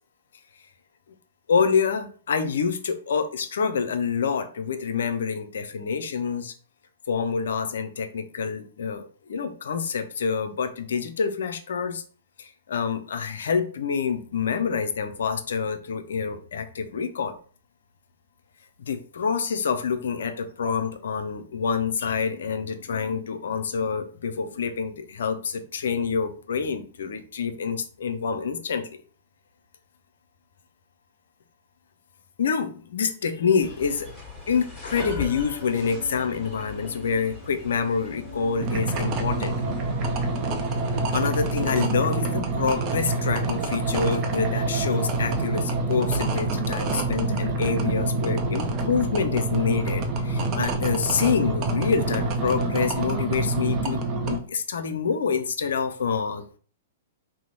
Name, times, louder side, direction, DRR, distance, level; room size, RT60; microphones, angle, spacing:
voice 1, 1.5-6.5 7.1-12.0 12.4-17.4 18.8-28.8 32.4-34.1 34.5-39.6 41.1-56.6, left 6 dB, 70° left, 9 dB, 0.4 m, -27 dB
sound 1, 33.6-41.8, left 3 dB, 5° left, 1.5 m, -39 dB
sound 2, 38.6-54.4, right 2 dB, 35° right, 0.6 m, -26 dB
2.9 x 2.0 x 3.8 m, 0.42 s
hypercardioid pair, 115°, 0 cm